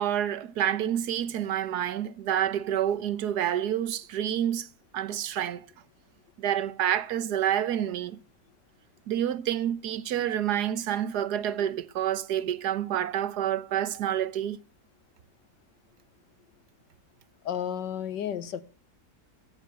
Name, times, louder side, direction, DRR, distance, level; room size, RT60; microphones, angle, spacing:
voice 1, 0.0-4.7 4.9-5.7 6.4-8.2 9.1-14.6, right 10 dB, 70° right, 1.5 m, -28 dB
voice 2, 17.5-18.6, left 9 dB, 80° left, 1.8 m, -32 dB
16.0 x 7.3 x 8.3 m
omnidirectional pair, 1.9 m